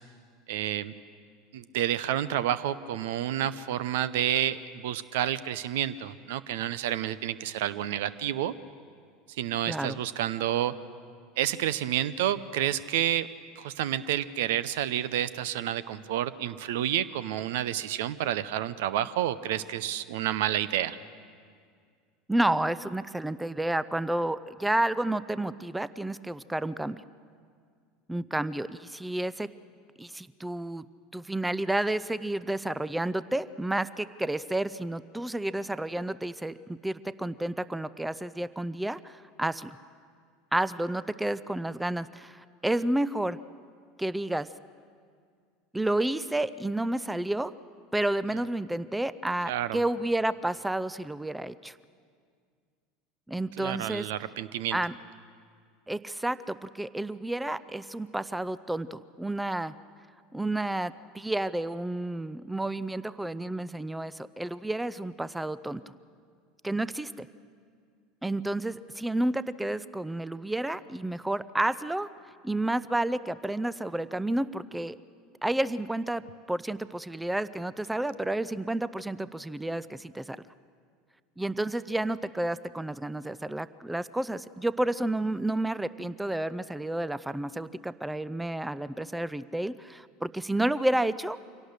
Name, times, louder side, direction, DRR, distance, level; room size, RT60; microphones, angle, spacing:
voice 1, 0.5-0.9 1.5-8.5 9.4-10.7 11.4-13.3 13.6-21.0 49.5-49.8 53.6-54.8, right 11 dB, 65° right, 17 dB, 0.6 m, -29 dB
voice 2, 9.7-10.0 22.3-27.0 28.1-29.5 30.0-30.8 31.1-39.8 40.5-43.4 44.0-44.5 45.7-47.5 47.9-51.7 53.3-54.1 54.7-54.9 55.9-59.7 60.3-65.8 66.6-67.3 68.2-72.1 72.4-75.0 75.4-80.4 81.4-91.4, right 1 dB, 5° right, 17 dB, 0.5 m, -30 dB
25.0 x 17.5 x 6.5 m, 2.1 s
figure-of-eight pair, 75°, 0 cm